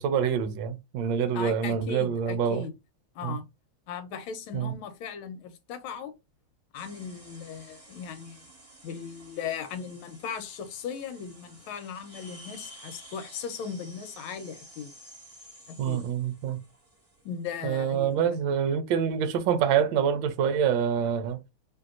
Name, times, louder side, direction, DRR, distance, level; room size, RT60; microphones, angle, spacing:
voice 1, 0.0-2.6 3.2-3.4 4.5-4.7 15.8-16.6 17.6-21.4, right 8 dB, 75° right, 1.2 m, -26 dB
voice 2, 1.3-2.7 3.1-3.4 3.9-6.1 6.7-8.5 8.8-14.9 15.7-16.0 17.2-18.4, left 6 dB, 80° left, 1.4 m, -38 dB
sound 1, 6.7-18.1, right 1 dB, 20° right, 1.0 m, -52 dB
3.1 x 2.7 x 2.4 m
omnidirectional pair, 2.3 m